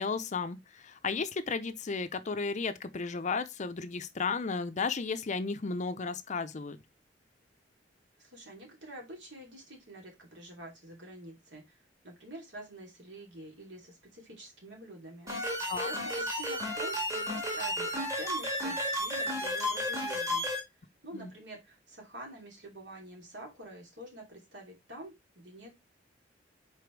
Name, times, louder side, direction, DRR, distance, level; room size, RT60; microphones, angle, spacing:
voice 1, 0.0-6.8 15.7-15.9 21.1-21.3, left 4 dB, 40° left, 0.5 m, -34 dB
voice 2, 8.2-15.5 15.8-20.5 21.0-25.7, right 1 dB, 70° right, 2.8 m, -47 dB
sound 1, 15.3-20.6, left 1 dB, 20° right, 1.7 m, -32 dB
5.1 x 4.1 x 4.5 m
head